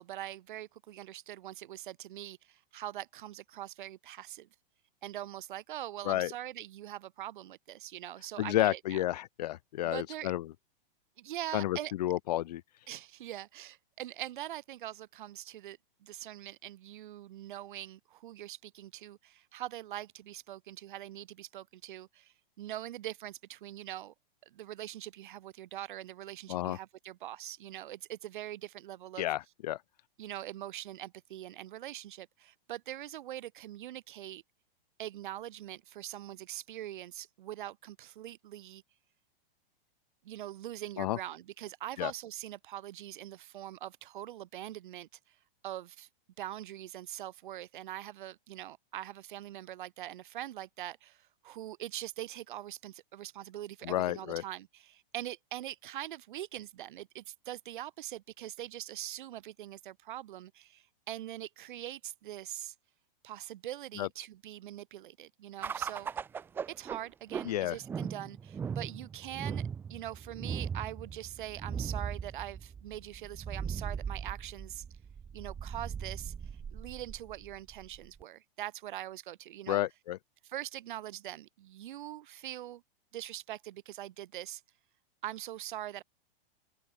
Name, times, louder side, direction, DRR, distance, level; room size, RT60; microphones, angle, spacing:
voice 1, 0.0-4.5 5.0-9.0 9.8-10.3 11.2-11.9 12.9-24.1 24.5-29.3 30.2-34.4 35.0-38.8 40.2-45.1 45.6-46.1 46.4-62.7 63.2-66.1 66.7-69.6 69.9-74.8 75.3-76.3 76.7-79.8 80.4-82.8 83.1-84.6 85.2-86.0, right 13 dB, 55° right, 4.4 m, -43 dB
voice 2, 8.4-10.5 11.5-12.6 26.5-26.8 29.2-29.8 41.0-41.2 42.0-42.1 53.8-54.4 64.0-64.1 67.4-67.8 79.7-80.2, left 14 dB, 45° left, 0.5 m, -31 dB
sound 1, 65.6-78.2, right 7 dB, 5° right, 0.7 m, -39 dB
open air
supercardioid pair, 170°, 29 cm